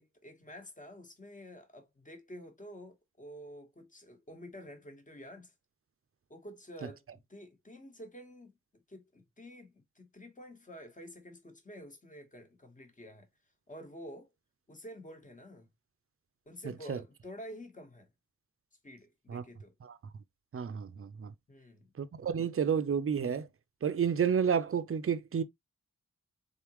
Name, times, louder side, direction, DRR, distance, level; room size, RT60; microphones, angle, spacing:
voice 1, 0.0-5.5 6.3-8.5 8.9-13.3 13.7-14.3 14.7-15.7 16.5-18.1 18.8-19.7 21.5-21.9, equal, 25° left, 1.2 m, -49 dB
voice 2, 20.5-21.3 22.0-23.5 23.8-25.4, right 7 dB, 45° right, 0.5 m, -30 dB
3.9 x 3.6 x 3.0 m
wide cardioid pair, 110°, 31 cm